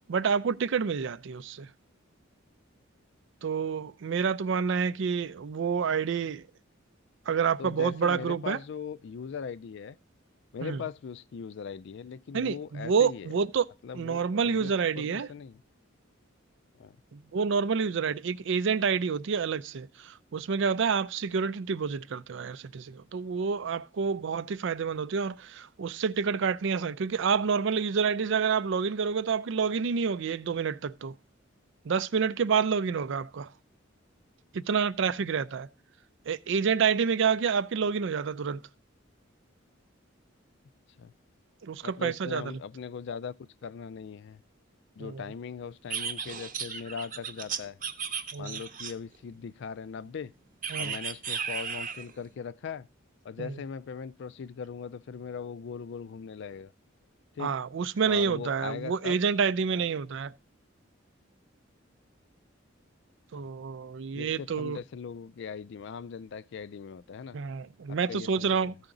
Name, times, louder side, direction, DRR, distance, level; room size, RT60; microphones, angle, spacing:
voice 1, 0.0-1.7 3.4-6.4 7.3-8.6 10.6-10.8 12.3-13.7 13.9-15.3 17.1-31.1 31.9-33.5 34.5-35.7 36.3-38.6 41.6-42.4 45.0-45.2 48.3-48.6 50.7-50.9 53.4-53.5 57.4-60.3 63.3-64.8 67.3-68.7, right 6 dB, 65° right, 0.4 m, -28 dB
voice 2, 7.6-10.0 10.5-13.3 13.8-15.6 16.8-17.0 41.0-41.1 41.8-43.3 43.6-44.4 45.0-47.8 48.4-50.3 50.8-52.9 53.2-56.7 57.4-57.6 58.0-59.2 59.8-59.9 63.3-63.5 64.1-67.4 67.9-68.8, left 6 dB, 60° left, 0.4 m, -40 dB
sound 1, 45.9-49.2 50.6-52.1, right 6 dB, 40° right, 0.8 m, -35 dB
14.5 x 4.9 x 3.8 m
head